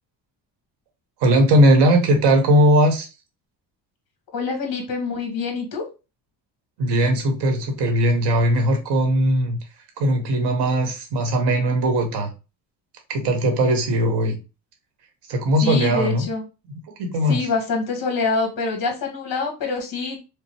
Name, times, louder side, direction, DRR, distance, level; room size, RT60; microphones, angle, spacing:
voice 1, 1.2-3.1 6.8-9.6 10.0-12.3 13.1-14.4 15.3-16.3 17.0-17.4, right 1 dB, 90° right, 4 dB, 1.4 m, -19 dB
voice 2, 4.3-5.8 15.6-16.4 17.3-20.2, left 4 dB, 60° left, 3 dB, 1.5 m, -25 dB
5.1 x 2.0 x 3.0 m, 0.30 s
cardioid pair, 160°, 40 cm